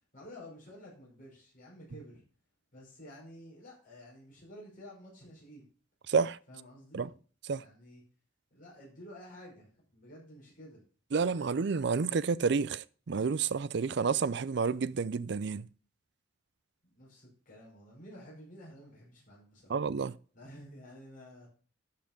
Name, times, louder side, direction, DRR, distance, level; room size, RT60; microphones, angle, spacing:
voice 1, 0.1-2.2 2.7-5.7 6.5-7.1 7.5-8.0 8.5-10.8 16.8-19.8 20.3-21.5, equal, 45° left, 5.4 m, -51 dB
voice 2, 6.1-6.4 6.9-7.1 7.5-7.6 11.1-15.7 19.7-20.1, right 5 dB, 65° right, 0.5 m, -30 dB
11.5 x 5.7 x 5.2 m
head